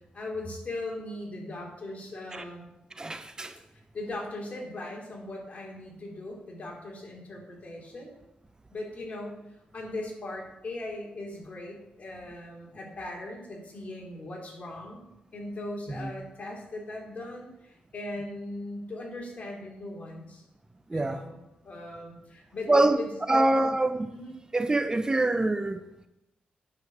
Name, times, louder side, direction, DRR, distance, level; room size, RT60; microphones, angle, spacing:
voice 1, 0.1-2.7 3.9-8.1 8.7-9.3 9.7-15.1 15.3-20.4 20.9-21.4 21.6-23.6 24.1-24.4, left 2 dB, 45° left, 3.2 m, -39 dB
voice 2, 3.0-3.6 16.0-16.1 20.9-21.2 22.7-23.0 23.3-24.1 24.5-25.8, right 2 dB, 20° right, 0.7 m, -25 dB
9.3 x 5.3 x 6.6 m
cardioid pair, 80°, 3 cm